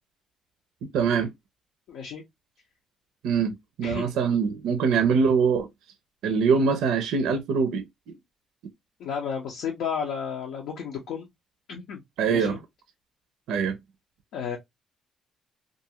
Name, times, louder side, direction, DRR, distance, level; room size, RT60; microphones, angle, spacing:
voice 1, 0.9-1.3 3.2-5.7 6.2-8.1 12.2-12.6 13.5-13.8, right 5 dB, 90° right, 0.4 m, -23 dB
voice 2, 1.9-2.2 3.8-4.1 9.0-11.3 11.7-12.0 12.3-12.6 14.3-14.6, left 7 dB, 85° left, 0.6 m, -32 dB
2.5 x 2.3 x 2.7 m
cardioid pair, 90°, 0 cm